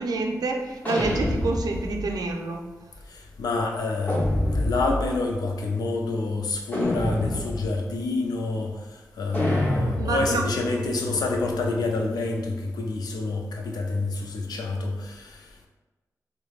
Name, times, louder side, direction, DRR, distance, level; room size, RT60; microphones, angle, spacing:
voice 1, 0.0-2.6 10.0-10.4, right 3 dB, 75° right, 2 dB, 0.4 m, -27 dB
sound 1, 0.8-2.1 4.1-5.2 6.7-7.8 9.3-12.0, left 1 dB, 25° left, 1.0 m, -28 dB
voice 2, 3.1-15.7, left 3 dB, 85° left, 2 dB, 0.4 m, -28 dB
3.2 x 2.1 x 2.3 m, 1.2 s
cardioid pair, 60°, 7 cm